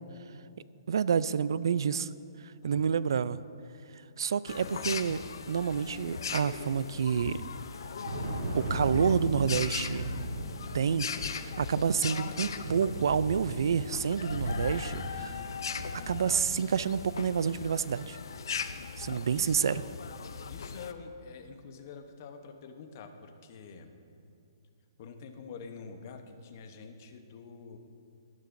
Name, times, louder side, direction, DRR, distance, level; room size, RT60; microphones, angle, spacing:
voice 1, 0.9-2.1 2.4-3.4 4.2-7.5 8.5-10.0 10.7-15.5 16.1-18.2 19.0-19.8, right 7 dB, 65° right, 17 dB, 0.3 m, -29 dB
voice 2, 2.6-2.9 19.3-19.7 20.5-23.9 25.0-27.8, left 5 dB, 35° left, 6 dB, 0.8 m, -46 dB
sound 1, 4.5-20.9, left 6 dB, 65° left, 0.6 m, -39 dB
Thunder, 7.5-16.9, equal, 90° right, 3.0 m, -37 dB
18.0 x 9.8 x 2.6 m, 2.5 s
hypercardioid pair, 165°, 2 cm